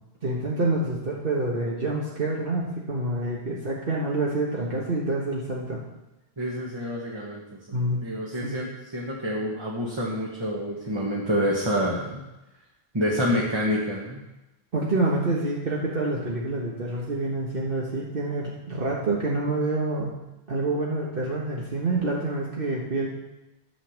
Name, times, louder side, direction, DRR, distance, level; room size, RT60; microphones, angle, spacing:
voice 1, 0.2-5.8 7.7-8.0 8.4-8.6 14.7-20.1 20.5-23.1, right 2 dB, 55° right, -4 dB, 1.6 m, -27 dB
voice 2, 6.4-12.2 12.9-14.2, equal, 25° right, -4 dB, 1.4 m, -28 dB
11.0 x 5.6 x 7.2 m, 1.0 s
omnidirectional pair, 1.1 m